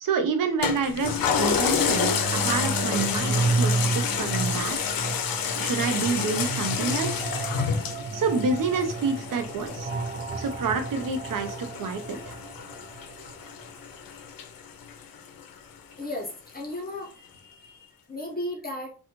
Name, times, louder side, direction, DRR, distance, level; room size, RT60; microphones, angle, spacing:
voice 1, 0.0-4.8 5.6-7.3 8.1-9.9 10.4-12.4, right 4 dB, 70° right, 0.7 m, -28 dB
Toilet flush, 0.6-15.4 15.9-16.0, left 7 dB, 75° left, 0.5 m, -29 dB
sound 1, 1.8-13.6, right 3 dB, 25° right, 0.4 m, -31 dB
voice 2, 15.9-18.9, left 1 dB, 25° left, 0.9 m, -36 dB
2.5 x 2.3 x 2.9 m
cardioid pair, 65°, 35 cm